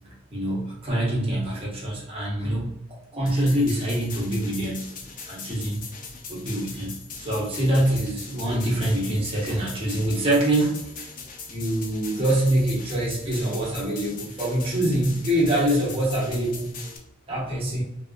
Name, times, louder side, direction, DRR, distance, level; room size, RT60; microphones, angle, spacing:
voice 1, 0.0-4.9 5.3-5.8 6.3-11.1 11.5-16.7 17.3-17.8, right 1 dB, 30° right, -4 dB, 0.9 m, -25 dB
sound 1, 3.3-17.0, left 5 dB, 45° left, 0.5 m, -40 dB
3.4 x 2.4 x 2.4 m, 0.83 s
head